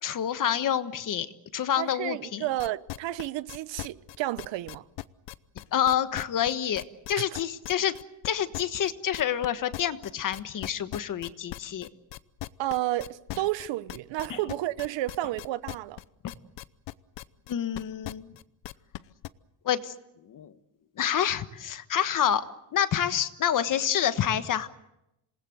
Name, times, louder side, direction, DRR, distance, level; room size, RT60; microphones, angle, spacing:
voice 1, 0.0-1.3 1.5-2.4 5.7-7.9 8.2-11.9 14.3-14.4 17.5-18.3 19.6-19.9 20.3-20.5 21.0-22.5 22.7-24.7, left 9 dB, 45° left, 1.4 m, -28 dB
voice 2, 1.8-4.8 7.2-7.3 12.6-16.0, right 15 dB, 70° right, 1.0 m, -31 dB
sound 1, 2.6-9.5 9.7-19.3, left 17 dB, 70° left, 0.9 m, -39 dB
27.5 x 20.0 x 7.9 m
cardioid pair, 145°, 45 cm